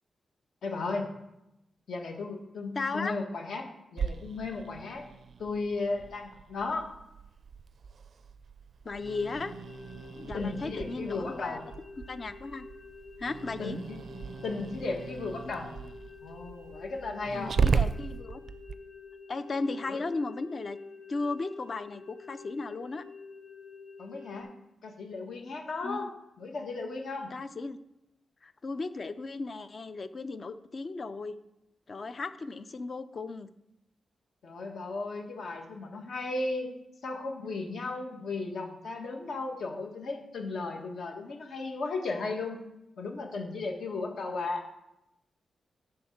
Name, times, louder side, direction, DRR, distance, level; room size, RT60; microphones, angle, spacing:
voice 1, 0.6-1.1 1.9-5.1 5.4-6.9 10.3-11.6 13.6-14.0 14.4-15.7 16.2-17.5 19.8-20.0 24.0-24.5 24.8-26.1 26.4-27.3 34.4-36.7 37.0-42.6 43.0-44.7, left 3 dB, 70° left, 2 dB, 1.5 m, -35 dB
voice 2, 2.7-3.1 8.8-9.5 10.1-11.6 12.0-12.7 13.2-13.8 17.3-18.4 19.3-20.8 21.1-23.0 25.8-26.1 27.3-27.8 28.4-31.4 31.9-33.5, left 3 dB, 40° left, 12 dB, 0.5 m, -35 dB
Growling, 4.0-18.8, right 5 dB, 55° right, 0.4 m, -36 dB
sound 1, 8.9-24.4, left 4 dB, 15° left, 0.9 m, -49 dB
10.5 x 3.7 x 7.2 m, 0.87 s
wide cardioid pair, 150°, 0 cm